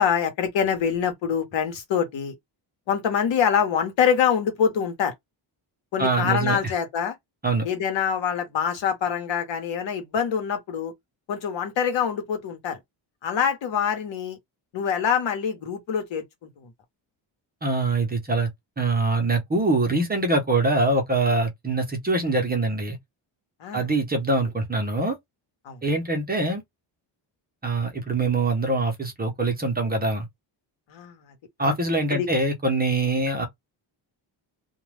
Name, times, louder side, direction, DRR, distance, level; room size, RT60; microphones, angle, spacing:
voice 1, 0.0-2.3 2.9-5.1 5.9-7.1 7.6-10.9 11.3-12.8 13.2-14.4 14.7-16.5 23.6-23.9 25.6-25.8 30.9-31.1 31.6-31.7 32.1-32.3, left 7 dB, 70° left, 1.1 m, -25 dB
voice 2, 6.0-6.6 7.4-7.7 17.6-18.5 18.8-23.0 23.7-25.2 25.8-26.6 27.6-30.3 31.6-33.5, right 2 dB, 20° right, 0.7 m, -24 dB
2.3 x 2.3 x 3.2 m
wide cardioid pair, 165°, 47 cm